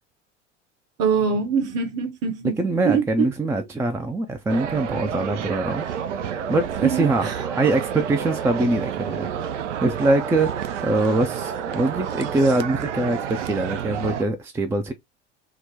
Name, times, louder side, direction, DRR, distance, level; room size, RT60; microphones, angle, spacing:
voice 1, 1.0-3.3 6.8-7.4, right 6 dB, 45° right, 1.0 m, -24 dB
voice 2, 2.6-9.3 9.8-14.9, right 2 dB, 10° right, 0.4 m, -23 dB
sound 1, 4.5-14.2, right 8 dB, 80° right, 0.5 m, -29 dB
3.8 x 2.1 x 2.7 m
figure-of-eight pair, 75°, 36 cm